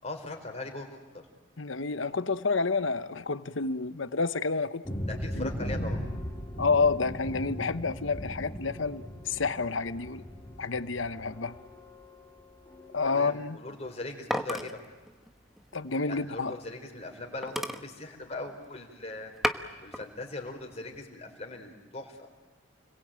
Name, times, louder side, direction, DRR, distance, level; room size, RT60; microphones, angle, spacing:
voice 1, 0.0-1.0 5.1-6.0 13.0-14.8 16.1-19.3 19.8-22.3, left 2 dB, 35° left, 4.6 m, -40 dB
voice 2, 1.6-4.8 5.4-5.5 6.6-10.2 10.6-11.6 12.9-13.6 15.7-16.5, left 4 dB, 75° left, 1.0 m, -29 dB
sound 1, 4.8-13.1, equal, 15° left, 3.9 m, -38 dB
sound 2, 13.7-16.8 17.1-17.2 17.4-18.8 19.2-20.1 20.5-21.0, equal, ahead, 1.1 m, -35 dB
30.0 x 22.0 x 8.9 m
head